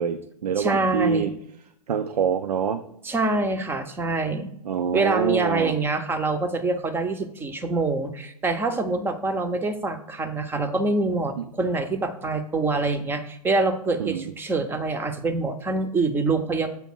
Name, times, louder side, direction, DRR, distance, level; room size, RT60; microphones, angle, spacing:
voice 1, 0.0-1.3 1.9-2.8 4.7-5.7 11.4-11.5 14.0-14.2, right 7 dB, 75° right, 9 dB, 0.5 m, -25 dB
voice 2, 0.6-1.3 3.0-4.5 4.9-16.7, right 3 dB, 10° right, 8 dB, 0.6 m, -25 dB
7.2 x 3.4 x 6.0 m, 0.74 s
hypercardioid pair, 120°, 20 cm